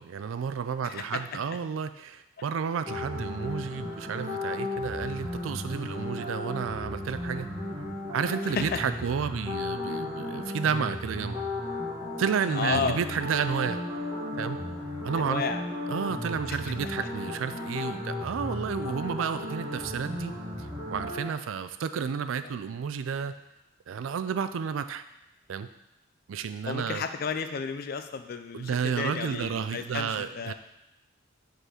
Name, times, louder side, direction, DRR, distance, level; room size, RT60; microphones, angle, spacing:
voice 1, 0.0-7.5 8.1-11.4 12.2-13.8 14.4-14.6 15.0-15.4 15.9-20.3 20.9-23.3 23.9-25.0 25.5-25.7 26.3-27.0 28.5-30.5, right 6 dB, 80° right, 11 dB, 0.4 m, -31 dB
voice 2, 0.8-1.4 8.4-8.8 12.5-13.0 15.2-15.6 16.5-16.6 22.4-22.6 26.7-30.5, left 5 dB, 50° left, 9 dB, 0.4 m, -32 dB
sound 1, 2.9-21.2, left 1 dB, 20° right, 1.7 m, -35 dB
5.2 x 3.9 x 4.9 m, 0.87 s
head